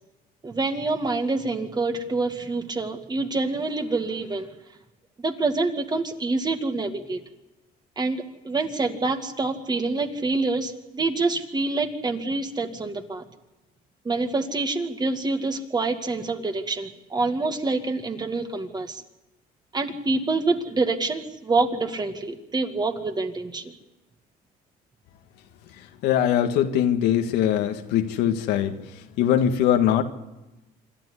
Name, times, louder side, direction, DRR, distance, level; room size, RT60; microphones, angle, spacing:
voice 1, 0.4-4.5 5.2-7.2 8.0-13.2 14.0-19.0 19.7-23.7, right 3 dB, 25° right, 7 dB, 2.2 m, -26 dB
voice 2, 26.0-28.8 29.2-30.0, left 10 dB, 90° left, 7 dB, 1.7 m, -21 dB
26.5 x 12.5 x 9.7 m, 1.0 s
cardioid pair, 110°, 17 cm